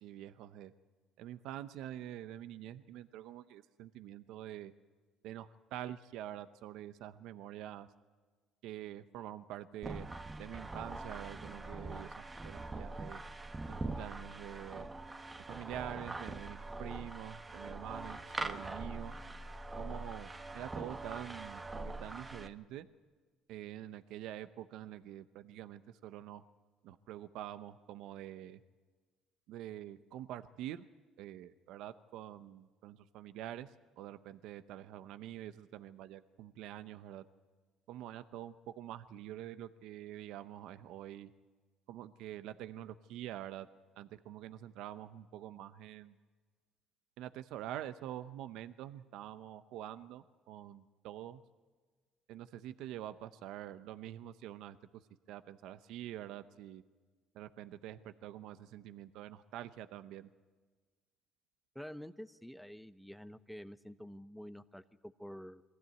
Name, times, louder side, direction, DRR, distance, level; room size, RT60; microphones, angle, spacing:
voice 1, 0.0-0.7 1.2-4.7 5.2-7.9 8.6-10.1 10.4-13.2 13.7-14.9 15.5-19.1 19.8-20.3 20.5-22.9 23.5-26.4 26.8-28.6 29.5-30.8 31.2-37.2 37.9-41.3 41.9-43.7 44.0-46.1 47.2-51.4 52.3-54.8 55.3-56.8 57.3-60.3, right 12 dB, 75° right, 12 dB, 0.7 m, -46 dB
sound 1, 9.8-22.5, right 2 dB, 20° right, 1.2 m, -43 dB
voice 2, 61.7-65.6, equal, ahead, 11 dB, 0.7 m, -48 dB
22.0 x 15.5 x 9.1 m, 1.4 s
supercardioid pair, 90°, 0 cm